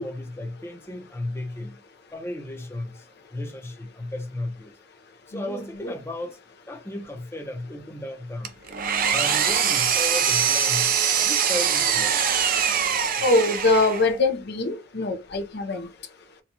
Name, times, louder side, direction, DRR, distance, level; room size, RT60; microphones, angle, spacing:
voice 1, 0.0-1.8 2.1-4.8 5.3-6.4 6.7-8.6 9.1-12.3, left 1 dB, 15° left, 0.7 m, -34 dB
voice 2, 5.5-5.9 13.2-15.9, left 2 dB, 55° left, 0.7 m, -23 dB
Engine, 8.4-14.2, right 7 dB, 45° right, 0.5 m, -23 dB
4.3 x 2.3 x 2.8 m
head